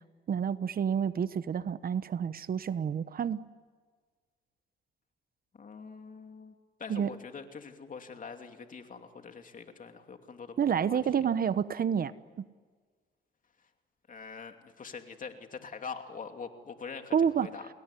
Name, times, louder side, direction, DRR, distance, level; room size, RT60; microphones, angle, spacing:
voice 1, 0.3-3.4 6.9-7.1 10.6-12.4 17.1-17.5, right 7 dB, 50° right, 14 dB, 1.0 m, -29 dB
voice 2, 5.5-6.5 6.8-11.0 14.1-17.2 17.4-17.7, left 5 dB, 40° left, 5 dB, 2.8 m, -44 dB
29.5 x 20.5 x 9.9 m, 1.5 s
cardioid pair, 90°, 20 cm